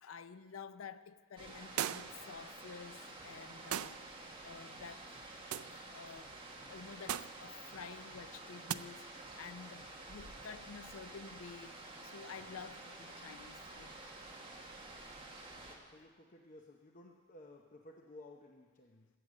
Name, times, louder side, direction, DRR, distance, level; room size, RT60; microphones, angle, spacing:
voice 1, 0.0-4.0 4.4-5.2 5.9-6.3 6.7-11.7 12.0-14.0, left 6 dB, 70° left, 0.5 m, -51 dB
sound 1, 1.4-15.8, right 2 dB, 25° right, 1.6 m, -50 dB
sound 2, 1.8-2.3 3.7-4.0 5.5-5.8 7.1-7.4 8.7-8.8, right 11 dB, 85° right, 0.4 m, -37 dB
sound 3, 4.7-5.8 6.1-10.7, equal, 10° left, 2.7 m, -66 dB
voice 2, 15.7-19.1, left 1 dB, 40° left, 0.7 m, -56 dB
14.5 x 7.8 x 7.5 m
head